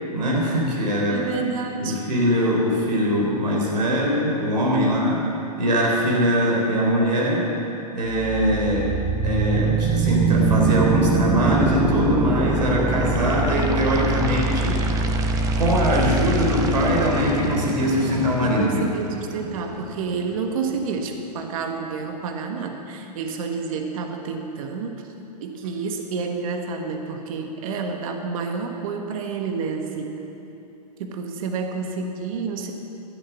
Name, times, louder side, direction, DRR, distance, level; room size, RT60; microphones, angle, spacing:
voice 1, 0.1-1.2 1.8-5.3 5.6-7.5 7.9-8.9 9.2-14.8 15.5-18.9, equal, 90° right, -2 dB, 3.6 m, -22 dB
voice 2, 1.1-2.0 4.8-5.0 18.4-25.1 25.4-30.2 31.0-32.7, right 5 dB, 55° right, 4 dB, 1.5 m, -29 dB
sound 1, 8.1-20.1, right 3 dB, 15° right, 0.9 m, -23 dB
12.0 x 10.5 x 7.2 m, 3.0 s
hypercardioid pair, 140°, 21 cm